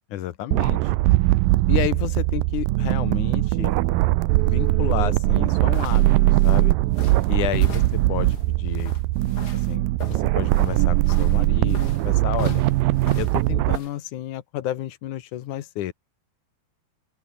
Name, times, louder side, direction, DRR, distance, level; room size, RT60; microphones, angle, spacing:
voice 1, 0.1-0.9 1.7-3.7 4.5-6.7 7.3-8.9 9.5-12.6 13.1-15.9, left 12 dB, 65° left, 2.1 m, -31 dB
sound 1, 0.5-13.8, right 18 dB, 90° right, 2.1 m, -20 dB
sound 2, 5.3-13.9, left 4 dB, 25° left, 2.9 m, -40 dB
open air
omnidirectional pair, 5.0 m